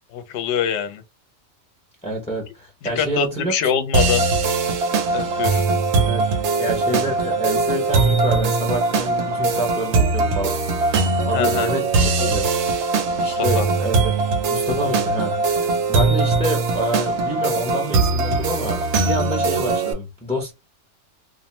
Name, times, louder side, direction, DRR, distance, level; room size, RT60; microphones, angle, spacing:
voice 1, 0.1-1.0 2.8-4.3 5.1-5.6 11.3-11.7 13.2-13.7, left 8 dB, 70° left, 0.8 m, -24 dB
voice 2, 2.0-3.5 6.1-6.3 6.6-10.5 11.2-11.9 12.2-12.4 13.2-14.0 14.5-15.4 15.9-20.5, right 1 dB, 5° left, 0.5 m, -27 dB
sound 1, 3.9-19.9, right 3 dB, 65° right, 0.9 m, -21 dB
2.5 x 2.1 x 2.9 m
omnidirectional pair, 1.3 m